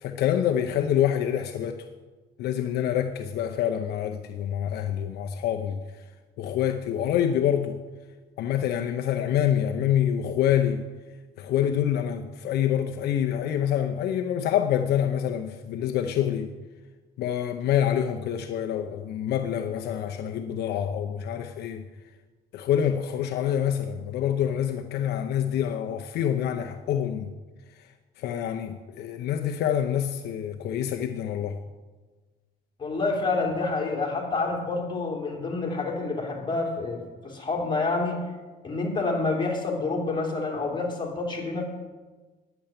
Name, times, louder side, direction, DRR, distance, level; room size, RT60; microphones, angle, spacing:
voice 1, 0.0-1.8 2.4-5.8 6.4-7.8 8.4-10.8 11.4-16.5 17.2-21.8 22.5-27.3 28.2-31.6, left 10 dB, 75° left, 0.7 m, -26 dB
voice 2, 32.8-38.2 38.6-41.6, left 3 dB, 30° left, 2.9 m, -28 dB
10.5 x 7.0 x 8.8 m
cardioid pair, 110°, 17 cm